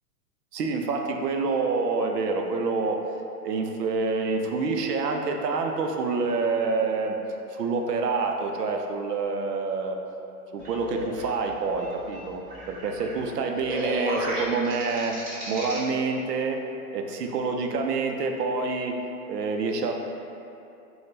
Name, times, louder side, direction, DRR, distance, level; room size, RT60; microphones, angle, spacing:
voice 1, 0.5-3.0 3.4-7.2 7.5-10.0 10.5-16.6 16.9-18.9 19.3-19.9, right 4 dB, 85° right, 3 dB, 0.6 m, -27 dB
sound 1, 10.6-15.8, equal, 25° right, 1.3 m, -35 dB
5.8 x 2.3 x 3.2 m, 2.8 s
hypercardioid pair, 125°, 46 cm